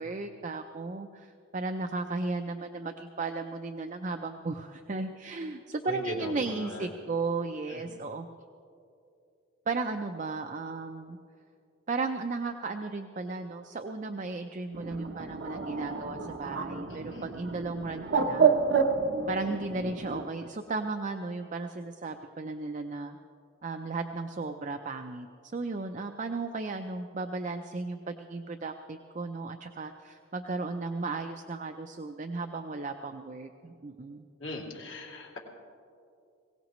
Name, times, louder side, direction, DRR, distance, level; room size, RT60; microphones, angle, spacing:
voice 1, 0.0-8.3 9.7-11.2 11.9-18.5 19.3-23.2 23.6-25.3 25.5-34.2, right 3 dB, 40° right, 6 dB, 0.5 m, -35 dB
voice 2, 5.8-6.9 7.7-8.0 16.9-17.2 34.4-35.4, left 1 dB, 75° left, -3 dB, 2.8 m, -39 dB
Bird, 14.7-20.3, right 5 dB, 60° right, 0.9 m, -29 dB
21.5 x 17.5 x 3.1 m, 2.5 s
head